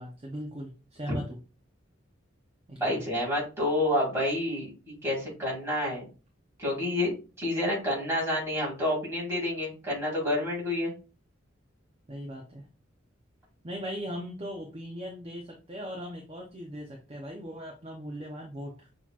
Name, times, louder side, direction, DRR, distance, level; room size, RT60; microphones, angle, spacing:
voice 1, 0.0-1.4 2.7-3.0 12.1-12.6 13.6-18.9, equal, 30° right, 0 dB, 0.7 m, -39 dB
voice 2, 2.8-6.1 6.6-7.1 7.4-10.9, left 1 dB, 15° right, -5 dB, 2.3 m, -29 dB
6.4 x 2.9 x 2.4 m, 0.34 s
head